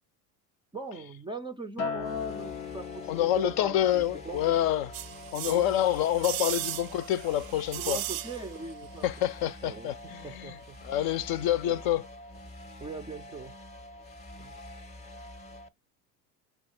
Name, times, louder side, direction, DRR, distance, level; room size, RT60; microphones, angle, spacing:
voice 1, 0.7-4.5 5.4-5.7 7.7-9.1 9.4-10.8 11.6-11.8 12.8-13.5 14.4-14.6, right 2 dB, 10° right, 0.4 m, -40 dB
Acoustic guitar, 1.8-6.2 6.6-7.0, left 6 dB, 90° left, 0.6 m, -40 dB
sound 1, 2.0-15.7, left 1 dB, 15° left, 0.7 m, -46 dB
voice 2, 3.1-4.9 5.3-8.0 9.0-12.1, left 12 dB, 50° left, 0.6 m, -27 dB
sound 2, 4.9-8.7 9.0-9.1, right 16 dB, 65° right, 0.5 m, -37 dB
4.6 x 2.3 x 4.3 m
hypercardioid pair, 75°, 46 cm